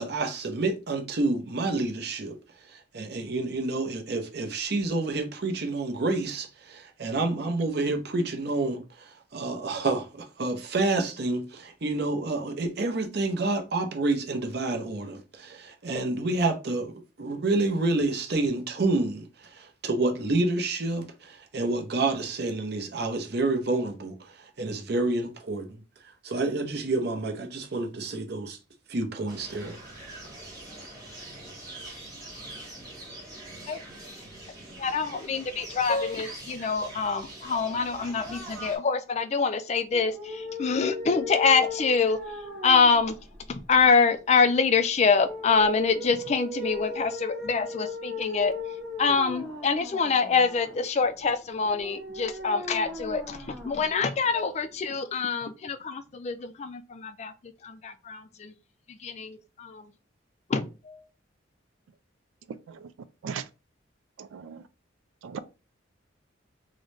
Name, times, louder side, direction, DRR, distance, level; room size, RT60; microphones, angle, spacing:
voice 1, 0.0-2.4 2.7-16.9 17.2-25.8 26.2-28.6 28.9-29.8, right 2 dB, 55° right, 0.7 m, -29 dB
sound 1, 29.3-38.8, right 1 dB, 20° right, 1.3 m, -43 dB
voice 2, 34.8-42.2 42.6-43.2 43.5-48.5 49.0-57.3 57.6-58.5 58.9-59.8 60.5-61.0, left 5 dB, 35° left, 0.3 m, -25 dB
sound 2, 39.9-54.9, left 3 dB, 5° left, 0.8 m, -39 dB
voice 3, 64.2-64.6 65.2-65.4, right 6 dB, 85° right, 0.3 m, -37 dB
3.8 x 2.1 x 3.2 m
head